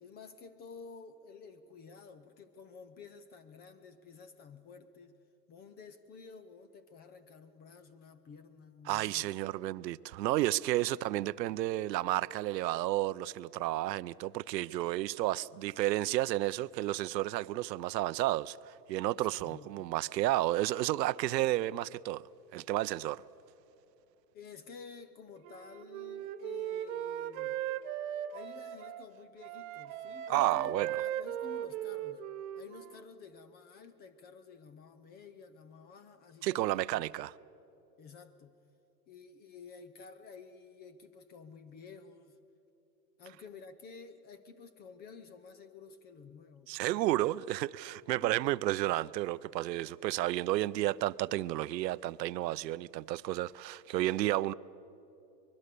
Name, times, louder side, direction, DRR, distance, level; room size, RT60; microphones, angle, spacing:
voice 1, 0.0-5.2 5.5-9.3 10.9-11.1 11.5-11.6 19.4-19.9 24.3-27.6 28.3-32.3 32.6-37.0 38.0-38.6 39.1-42.4 43.2-47.3 48.2-48.4, left 5 dB, 20° left, 0.6 m, -52 dB
voice 2, 8.9-22.2 22.5-23.2 30.3-30.9 36.4-37.3 46.7-54.5, right 16 dB, 75° right, 0.7 m, -32 dB
Wind instrument woodwind instrument, 25.4-29.1 29.4-33.0, right 11 dB, 50° right, 1.3 m, -38 dB
24.0 x 21.5 x 6.8 m
hypercardioid pair, 135°, 50 cm